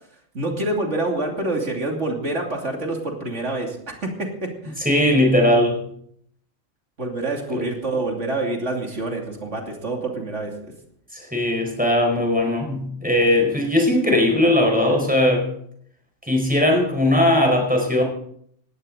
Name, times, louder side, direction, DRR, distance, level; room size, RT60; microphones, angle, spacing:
voice 1, 0.3-4.8 7.0-10.5, right 2 dB, 70° right, 1 dB, 3.2 m, -27 dB
voice 2, 4.8-5.8 7.5-7.6 11.1-15.5 16.2-18.0, left 1 dB, 5° right, 1 dB, 4.8 m, -19 dB
18.5 x 15.5 x 4.0 m, 0.67 s
omnidirectional pair, 1.3 m